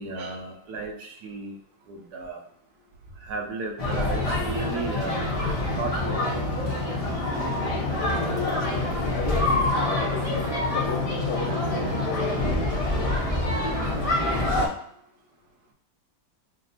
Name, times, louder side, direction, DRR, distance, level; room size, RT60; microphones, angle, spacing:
voice 1, 0.0-1.6 1.9-2.4 3.1-5.3 5.7-6.6 10.6-10.8 13.6-13.7 14.0-14.2, right 3 dB, 75° right, 1.3 m, -35 dB
sound 1, 3.8-14.7, left 2 dB, 40° left, 0.5 m, -26 dB
voice 2, 7.9-12.7, left 4 dB, 85° left, 1.3 m, -35 dB
6.2 x 2.1 x 2.6 m
omnidirectional pair, 1.7 m